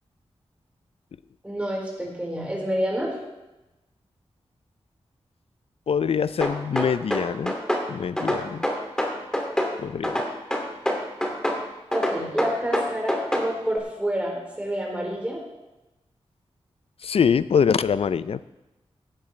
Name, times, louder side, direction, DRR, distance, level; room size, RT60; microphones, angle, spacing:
voice 1, 1.4-3.2 11.9-15.4, equal, 10° right, -2 dB, 4.3 m, -28 dB
voice 2, 5.9-7.5 7.9-8.7 9.8-10.1 17.0-18.4, left 7 dB, 70° left, 16 dB, 0.4 m, -24 dB
sound 1, 6.4-7.9 8.2-9.7 10.0-11.6 11.9-13.5, equal, 5° left, 2.4 m, -25 dB
16.5 x 10.5 x 3.3 m, 1.0 s
wide cardioid pair, 80°, 11 cm